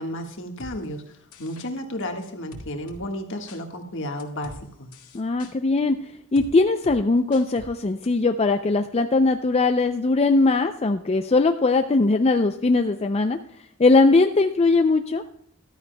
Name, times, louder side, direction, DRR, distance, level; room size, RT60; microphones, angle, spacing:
voice 1, 0.0-4.9, left 1 dB, 60° left, 4 dB, 1.5 m, -33 dB
sound 1, 0.6-0.7 1.3-1.7 2.5-3.0 3.5-3.6 4.2-4.6 4.9-5.5 6.4-6.5 6.8-7.0 7.3-7.7 8.0-8.1, left 1 dB, 85° left, 1.8 m, -42 dB
voice 2, 5.1-6.0 6.3-13.4 13.8-15.2, left 3 dB, 30° left, 7 dB, 0.4 m, -20 dB
14.5 x 12.5 x 2.2 m, 0.77 s
head